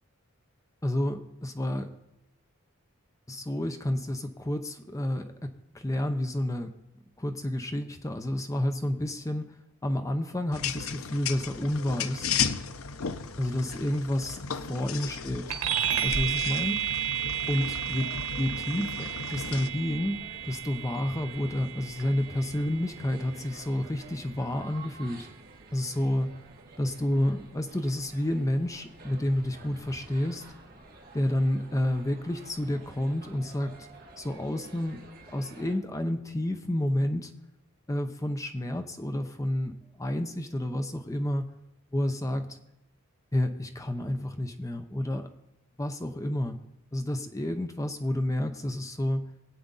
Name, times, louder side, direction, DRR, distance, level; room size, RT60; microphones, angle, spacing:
voice 1, 0.8-1.9 3.3-6.7 7.2-12.4 13.4-15.4 16.0-16.8 17.5-25.3 25.7-26.4 26.8-30.5 31.1-33.8 34.2-35.0 35.3-37.3 37.9-41.5 41.9-42.6 43.3-45.3 45.8-46.6 46.9-49.3, left 1 dB, 15° left, 6 dB, 0.7 m, -30 dB
sound 1, 10.5-19.7, left 6 dB, 80° left, 0.7 m, -35 dB
sound 2, 15.5-25.3, right 9 dB, 90° right, 1.4 m, -33 dB
sound 3, 19.0-35.8, right 2 dB, 45° right, 1.9 m, -50 dB
21.5 x 8.5 x 4.0 m, 0.88 s
head